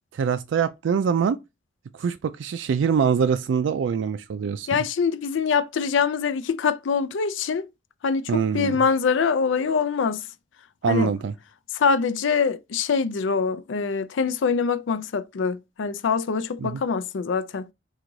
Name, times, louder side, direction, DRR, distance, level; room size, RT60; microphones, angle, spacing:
voice 1, 0.1-1.4 1.9-4.8 8.3-8.8 10.8-11.3 16.6-16.8, right 6 dB, 80° right, 0.3 m, -24 dB
voice 2, 4.7-7.7 8.0-10.2 10.9-11.1 11.7-17.7, left 5 dB, 85° left, 0.4 m, -24 dB
4.5 x 2.4 x 3.8 m
head